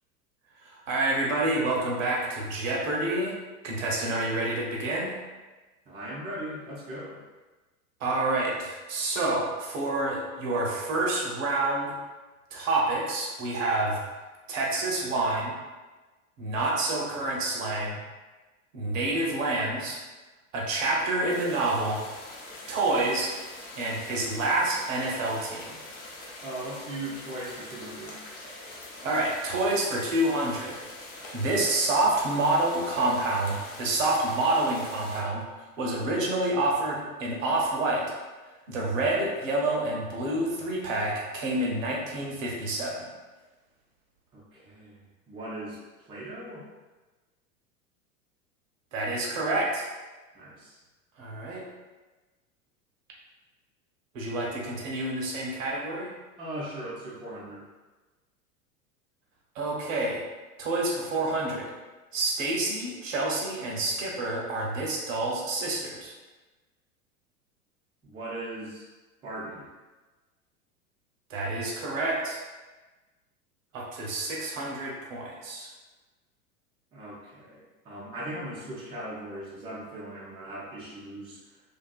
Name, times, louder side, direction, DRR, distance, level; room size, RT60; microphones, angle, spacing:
voice 1, 0.6-3.4 3.6-5.2 8.0-11.9 12.5-14.0 14.5-15.6 16.4-18.0 18.7-20.0 20.5-22.0 22.7-23.3 23.8-25.8 29.0-30.8 31.3-38.0 38.7-43.1 48.9-49.9 51.2-51.6 54.1-56.1 59.5-60.2 60.6-61.7 62.1-66.1 71.3-72.4 73.7-75.7, right 2 dB, 60° right, -2 dB, 0.8 m, -28 dB
voice 2, 5.9-7.2 26.4-28.2 44.3-45.0 45.3-45.8 46.1-46.6 50.3-50.8 56.4-57.6 68.0-68.9 69.2-69.7 76.9-81.4, right 1 dB, 10° right, -7 dB, 0.4 m, -39 dB
sound 1, 21.3-35.2, left 2 dB, 60° left, 0.8 m, -44 dB
2.5 x 2.5 x 2.3 m, 1.2 s
figure-of-eight pair, 85°, 45 cm